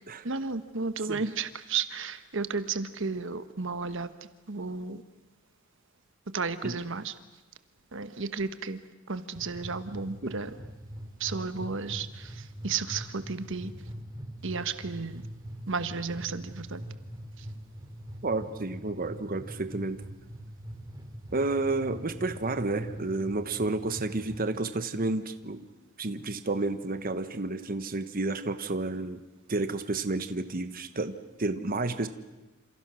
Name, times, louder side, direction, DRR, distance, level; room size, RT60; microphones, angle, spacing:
voice 1, 0.2-4.1 4.5-5.0 6.3-7.1 7.9-8.8 9.1-10.5 11.2-13.7 14.4-15.2 15.7-16.8 17.4-17.5, right 4 dB, 65° right, 11 dB, 1.2 m, -33 dB
sound 1, 9.3-24.5, equal, 20° right, 3.4 m, -43 dB
voice 2, 18.2-20.0 21.3-25.6 26.0-29.2 29.5-32.1, right 2 dB, 45° right, 10 dB, 1.2 m, -31 dB
29.0 x 27.5 x 6.3 m, 1.1 s
head